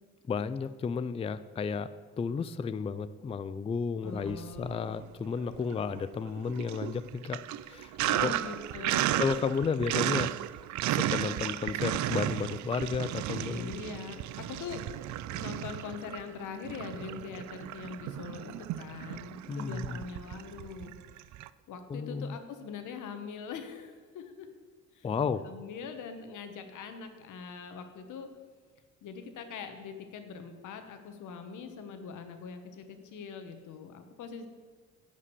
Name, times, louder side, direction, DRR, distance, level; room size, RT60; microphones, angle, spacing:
voice 1, 0.3-7.4 7.7-7.9 8.2-8.3 9.2-10.3 10.9-13.7 19.5-20.0 21.9-22.3 25.0-25.5, left 5 dB, 20° left, 14 dB, 0.4 m, -32 dB
voice 2, 4.0-4.9 8.1-9.2 13.5-14.2 14.5-14.9 15.3-20.9 21.7-24.5 24.9-25.1 25.4-28.3 29.0-34.5, left 6 dB, 80° left, 7 dB, 1.2 m, -42 dB
Sink (filling or washing), 4.2-5.0 5.4-21.5, right 13 dB, 70° right, 0.4 m, -34 dB
10.5 x 5.2 x 8.2 m, 1.5 s
cardioid pair, 90°, 30 cm